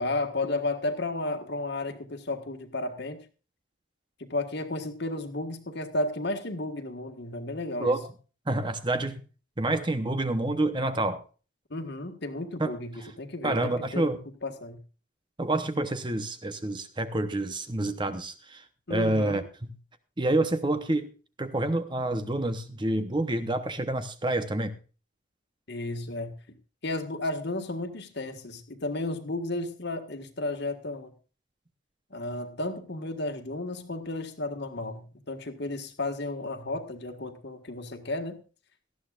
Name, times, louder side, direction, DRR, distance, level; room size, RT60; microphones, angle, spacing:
voice 1, 0.0-3.2 4.2-8.0 11.7-14.1 14.4-14.8 18.9-19.4 25.7-26.3 26.8-31.1 32.1-38.4, left 2 dB, 55° left, 6 dB, 1.6 m, -33 dB
voice 2, 7.8-8.1 8.5-9.2 9.6-11.2 12.6-12.7 13.4-14.2 15.4-18.6 18.9-19.7 20.2-21.1 21.4-24.7, right 2 dB, 25° right, 10 dB, 0.8 m, -28 dB
18.5 x 13.0 x 2.4 m, 0.35 s
head